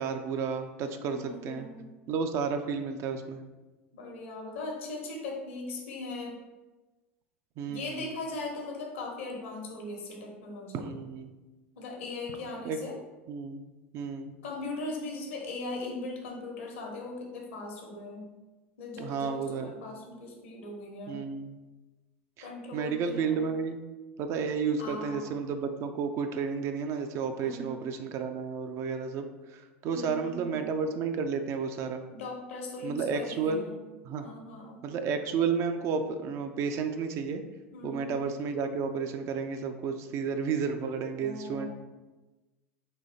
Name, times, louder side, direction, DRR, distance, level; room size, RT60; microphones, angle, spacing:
voice 1, 0.0-1.7 2.1-3.4 7.6-8.0 10.7-11.3 12.6-12.8 13.3-13.6 13.9-14.3 19.0-19.7 21.1-21.6 22.4-22.5 22.7-23.8 24.2-32.0 32.8-33.7 34.0-34.2 34.8-37.4 37.8-41.7, right 5 dB, 45° right, 6 dB, 0.4 m, -32 dB
voice 2, 1.0-1.9 3.9-6.4 7.7-10.9 11.8-13.0 14.4-18.3 18.8-21.3 22.4-23.5 24.8-25.3 27.4-27.8 29.8-30.7 32.1-33.8 34.2-34.8 37.7-38.1 41.2-41.7, left 2 dB, 65° left, 1 dB, 1.0 m, -39 dB
3.9 x 2.7 x 4.0 m, 1.1 s
figure-of-eight pair, 75°, 7 cm